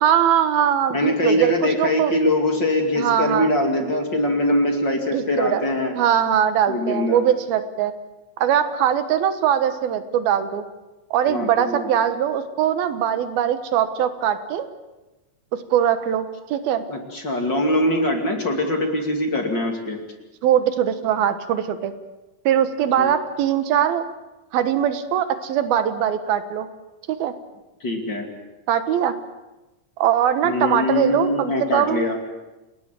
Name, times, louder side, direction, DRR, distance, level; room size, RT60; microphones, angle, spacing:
voice 1, 0.0-2.1 3.0-3.5 5.1-5.6 5.9-7.9 8.4-10.6 11.1-14.7 15.5-16.8 20.4-21.9 22.5-24.0 24.5-26.7 27.1-27.3 28.7-29.2 30.0-32.1, right 9 dB, 85° right, 10 dB, 3.2 m, -21 dB
voice 2, 0.9-5.9 6.7-7.3 11.3-11.9 16.9-20.0 23.0-23.1 27.8-28.3 30.4-32.2, left 1 dB, 35° left, 3 dB, 2.9 m, -22 dB
29.0 x 20.0 x 7.6 m, 1.1 s
omnidirectional pair, 4.2 m